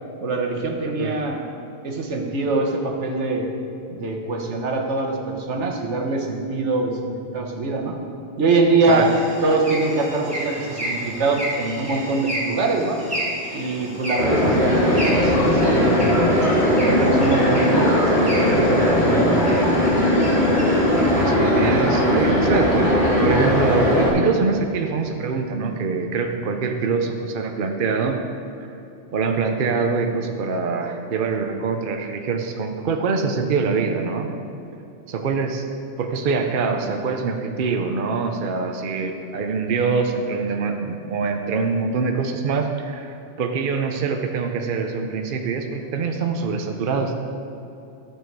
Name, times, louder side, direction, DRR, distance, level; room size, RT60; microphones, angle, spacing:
voice 1, 0.2-1.4 1.8-3.5 3.9-8.0 8.4-9.1 9.4-13.0 13.5-16.3 16.7-19.4, right 3 dB, 75° right, 2 dB, 1.4 m, -23 dB
sound 1, 8.8-21.2, equal, 5° right, 2.5 m, -32 dB
sound 2, 14.2-24.1, left 1 dB, 40° left, 2.7 m, -18 dB
voice 2, 21.2-28.2 29.1-34.3 35.1-35.7 36.0-47.1, right 4 dB, 55° right, 4 dB, 0.8 m, -24 dB
13.0 x 6.4 x 4.6 m, 2.8 s
omnidirectional pair, 1.2 m